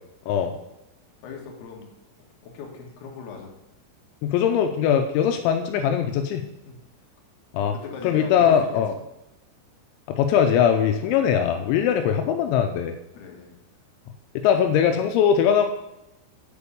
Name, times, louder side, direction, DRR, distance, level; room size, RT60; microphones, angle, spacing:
voice 1, 1.2-1.9 2.4-3.5 6.6-6.8 7.7-8.6 8.9-9.0 13.1-13.6, left 5 dB, 65° left, 0 dB, 2.9 m, -39 dB
voice 2, 4.2-6.5 7.5-7.7 8.0-8.9 10.1-12.9 14.4-15.6, left 8 dB, 85° left, 5 dB, 2.6 m, -21 dB
8.5 x 4.4 x 6.9 m, 0.90 s
omnidirectional pair, 5.9 m